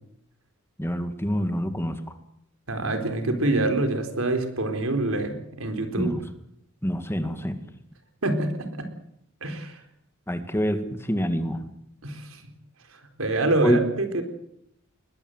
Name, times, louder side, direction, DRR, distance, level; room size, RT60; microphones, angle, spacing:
voice 1, 0.8-2.0 6.0-6.2 6.8-7.6 10.3-11.6 13.6-13.8, equal, 10° left, 8 dB, 1.9 m, -26 dB
voice 2, 2.7-6.1 8.2-8.9 9.4-9.8 12.0-12.4 13.2-14.2, right 2 dB, 85° right, 6 dB, 4.2 m, -26 dB
21.5 x 20.5 x 8.1 m, 0.74 s
head